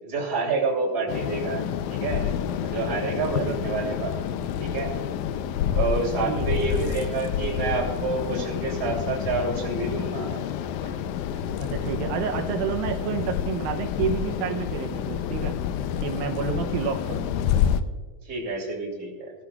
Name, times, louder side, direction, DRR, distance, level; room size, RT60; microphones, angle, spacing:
voice 1, 0.0-2.4 2.6-4.1 4.6-4.9 5.7-10.3 18.2-19.3, right 4 dB, 30° right, -2 dB, 2.9 m, -28 dB
sound 1, 1.1-17.8, left 9 dB, 85° left, 1.7 m, -28 dB
voice 2, 3.1-3.8 6.2-6.6 11.6-15.6 16.0-17.4, right 7 dB, 85° right, 5 dB, 2.4 m, -30 dB
sound 2, 9.7-14.4, right 2 dB, 15° left, 4.1 m, -48 dB
17.5 x 13.0 x 2.3 m, 1.5 s
omnidirectional pair, 4.0 m